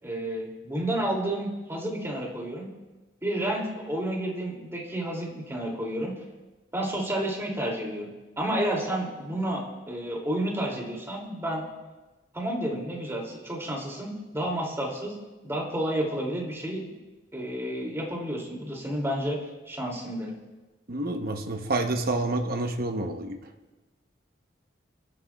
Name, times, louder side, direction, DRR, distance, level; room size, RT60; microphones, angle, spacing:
voice 1, 0.0-2.7 3.2-6.1 6.7-8.1 8.4-11.6 12.3-15.1 15.4-16.9 17.3-19.4 19.7-20.3, right 1 dB, 15° right, -2 dB, 2.7 m, -30 dB
voice 2, 20.9-23.4, right 2 dB, 55° right, 4 dB, 0.9 m, -28 dB
29.5 x 11.5 x 2.4 m, 1.2 s
head